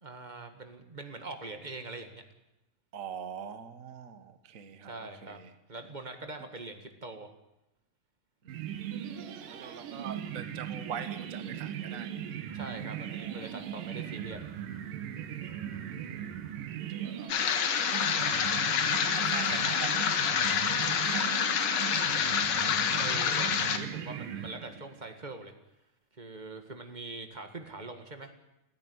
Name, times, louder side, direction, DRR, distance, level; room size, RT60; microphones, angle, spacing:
voice 1, 0.0-2.2 4.9-5.4 5.7-7.3 12.5-14.4 23.0-25.5 26.2-28.3, right 3 dB, 25° right, 6 dB, 0.9 m, -43 dB
voice 2, 2.9-4.9 5.2-5.5 8.4-9.0 9.5-12.3 16.7-22.0, right 8 dB, 65° right, 9 dB, 0.8 m, -44 dB
sound 1, 8.5-25.1, right 9 dB, 90° right, 3.0 m, -38 dB
sound 2, 17.3-23.8, left 7 dB, 60° left, 2.4 m, -28 dB
30.0 x 10.0 x 9.6 m, 0.91 s
omnidirectional pair, 3.7 m